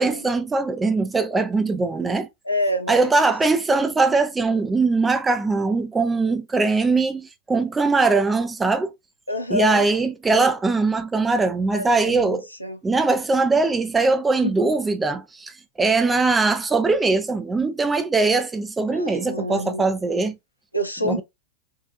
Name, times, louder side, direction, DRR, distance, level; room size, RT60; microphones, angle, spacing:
voice 1, 0.0-2.3 2.9-8.9 9.5-12.5 12.8-15.5 15.8-20.3 21.0-21.2, right 3 dB, 15° right, 0.5 m, -21 dB
voice 2, 2.4-3.3 9.3-9.8 11.7-12.8 14.4-14.7 18.9-19.9 20.7-21.2, equal, 85° left, 0.7 m, -28 dB
3.9 x 2.6 x 2.5 m
figure-of-eight pair, 90°, 0 cm